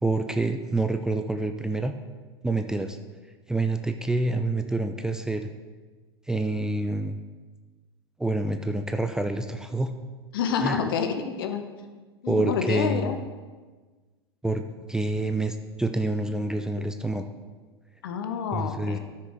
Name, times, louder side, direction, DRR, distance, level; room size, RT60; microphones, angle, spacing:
voice 1, 0.0-2.0 2.4-3.0 3.5-5.5 6.3-7.2 8.2-9.9 10.6-10.8 12.3-13.1 14.4-14.6 14.9-17.3 18.5-19.0, right 2 dB, 5° right, 7 dB, 0.5 m, -27 dB
voice 2, 10.3-11.6 12.2-13.2 18.0-19.0, left 6 dB, 60° left, 7 dB, 1.0 m, -28 dB
14.5 x 6.4 x 3.8 m, 1.4 s
figure-of-eight pair, 90°, 14 cm